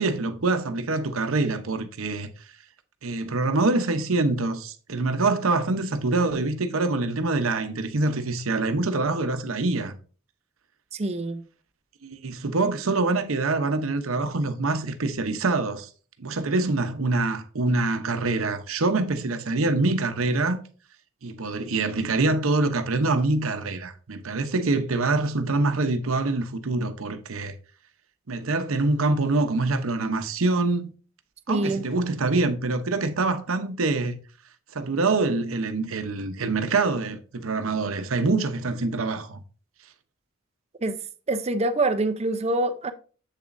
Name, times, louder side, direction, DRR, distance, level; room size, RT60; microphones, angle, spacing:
voice 1, 0.0-2.3 3.0-10.0 12.0-15.9 16.2-20.6 21.2-27.5 28.3-30.9 31.5-34.2 34.7-39.4, right 3 dB, 80° right, 0.8 m, -25 dB
voice 2, 10.9-11.4 31.5-31.9 40.8-41.0 41.3-42.9, right 2 dB, 30° right, 0.5 m, -25 dB
7.5 x 7.0 x 2.6 m
head